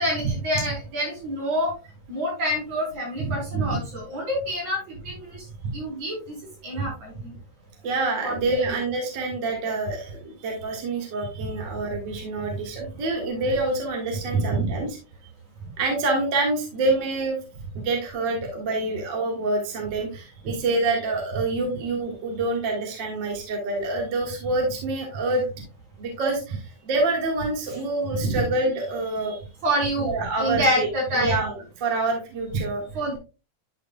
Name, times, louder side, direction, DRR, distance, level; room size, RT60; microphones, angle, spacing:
voice 1, 0.0-1.7 2.1-5.4 5.7-6.4 6.6-7.3 8.2-8.7 14.3-14.8 20.5-20.6 28.2-28.4 29.6-30.1 30.4-31.4 32.9-33.2, right 1 dB, 65° right, -2 dB, 5.1 m, -26 dB
voice 2, 7.8-15.0 15.8-17.4 17.8-25.5 26.0-29.4 30.0-30.9 31.1-32.8, right 2 dB, 40° right, 0 dB, 2.0 m, -27 dB
11.5 x 5.6 x 2.3 m, 0.32 s
omnidirectional pair, 3.5 m